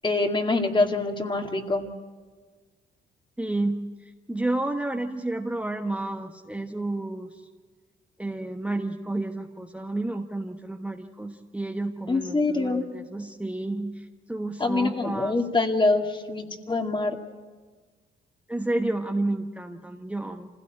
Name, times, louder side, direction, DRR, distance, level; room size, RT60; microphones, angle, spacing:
voice 1, 0.0-1.9 12.1-12.9 14.6-17.2, left 3 dB, 25° left, 4 dB, 2.2 m, -25 dB
voice 2, 3.4-7.4 8.2-15.3 18.5-20.5, right 2 dB, 5° right, 2 dB, 1.2 m, -31 dB
26.0 x 16.5 x 8.7 m, 1.4 s
cardioid pair, 90°, 20 cm